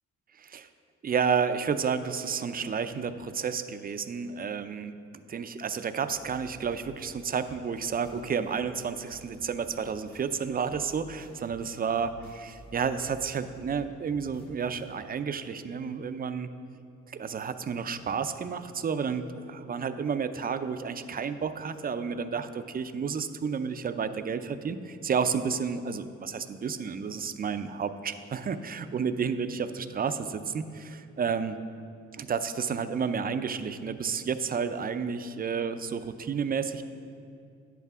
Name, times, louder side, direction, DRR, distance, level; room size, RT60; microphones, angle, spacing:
voice 1, 0.4-0.7 1.0-16.5 17.1-31.6 32.1-36.8, right 6 dB, 30° right, 11 dB, 0.5 m, -31 dB
sound 1, 6.1-15.2, equal, 65° left, 1.4 m, -53 dB
10.0 x 8.2 x 3.6 m, 2.5 s
cardioid pair, 90°, 30 cm